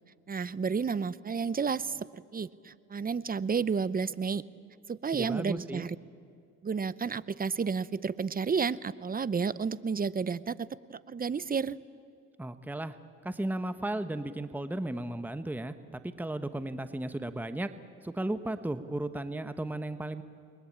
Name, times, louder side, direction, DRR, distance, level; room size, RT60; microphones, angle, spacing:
voice 1, 0.3-4.4 4.9-6.0 6.6-11.8, right 5 dB, 30° right, 18 dB, 0.8 m, -31 dB
voice 2, 5.1-5.8 12.4-13.0 13.2-15.7 16.0-17.7 18.0-20.2, right 1 dB, 5° right, 10 dB, 1.2 m, -35 dB
29.0 x 21.5 x 8.8 m, 2.4 s
cardioid pair, 90°, 30 cm